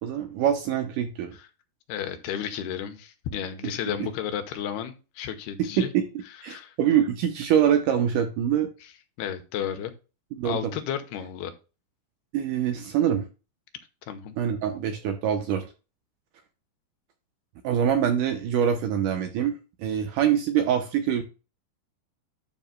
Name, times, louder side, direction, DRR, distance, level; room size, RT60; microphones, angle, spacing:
voice 1, 0.0-1.4 5.6-6.0 6.4-8.7 10.4-10.7 12.3-13.3 14.4-15.7 17.6-19.5 19.8-21.2, right 9 dB, 75° right, 6 dB, 2.0 m, -24 dB
voice 2, 1.9-5.9 6.5-6.7 9.2-9.9 10.4-11.5 14.1-14.3, left 9 dB, 90° left, 8 dB, 2.9 m, -32 dB
12.0 x 5.5 x 2.2 m, 0.31 s
omnidirectional pair, 4.5 m